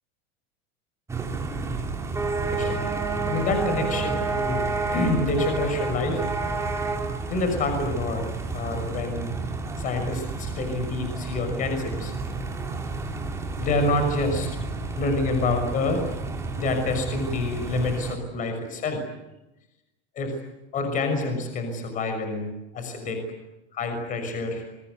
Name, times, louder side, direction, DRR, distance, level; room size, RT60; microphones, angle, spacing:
sound 1, 1.1-18.2, right 3 dB, 10° right, 3.2 m, -30 dB
voice 1, 2.4-2.8 3.2-6.2 7.3-8.3 8.5-9.3 9.8-12.1 13.6-14.5 14.9-16.0 16.6-19.0 20.2-20.3 20.7-23.2 23.7-24.6, left 2 dB, 25° left, 6 dB, 6.2 m, -27 dB
29.5 x 23.5 x 8.2 m, 0.97 s
supercardioid pair, 175°, 33 cm